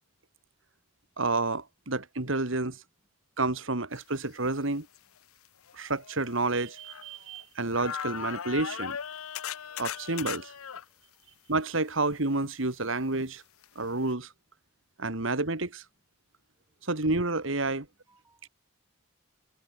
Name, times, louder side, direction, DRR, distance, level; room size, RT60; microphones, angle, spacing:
voice 1, 1.2-2.8 3.4-4.9 5.7-9.0 9.8-10.5 11.5-13.4 13.8-14.3 15.0-15.8 16.9-17.9, right 2 dB, 65° right, 2.0 m, -29 dB
sound 1, 4.9-5.0 5.7-7.4 7.7-10.8 13.6-13.7 14.1-14.2, left 8 dB, 90° left, 0.8 m, -38 dB
voice 2, 10.9-11.3 16.7-16.8 17.8-18.5, right 2 dB, 10° right, 7.0 m, -70 dB
head